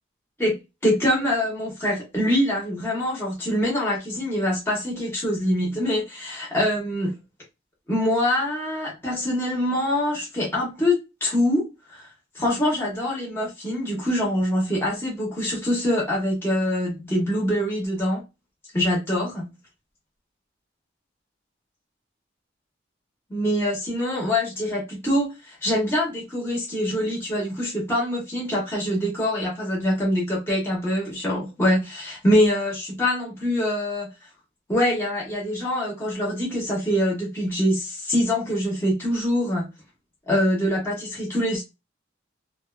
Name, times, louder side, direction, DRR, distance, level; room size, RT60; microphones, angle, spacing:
voice 1, 0.8-7.1 7.9-12.1 12.3-18.2 18.7-19.5 23.3-34.1 34.7-39.7 40.3-41.6, left 1 dB, 10° left, 0.8 m, -24 dB
2.5 x 2.2 x 2.3 m
head